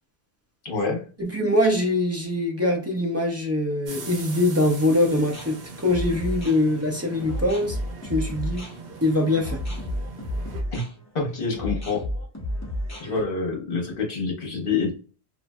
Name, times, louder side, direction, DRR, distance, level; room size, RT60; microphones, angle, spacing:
voice 1, 0.6-1.0 10.7-10.8 11.1-12.1 13.0-14.9, left 4 dB, 60° left, 1.1 m, -27 dB
voice 2, 1.2-7.8 8.1-8.6 9.0-9.6, left 1 dB, 20° right, 0.6 m, -23 dB
sound 1, 3.8-10.6, right 4 dB, 65° right, 1.0 m, -41 dB
sound 2, 5.1-13.2, left 1 dB, 15° left, 0.9 m, -32 dB
3.1 x 2.5 x 2.3 m
omnidirectional pair, 1.1 m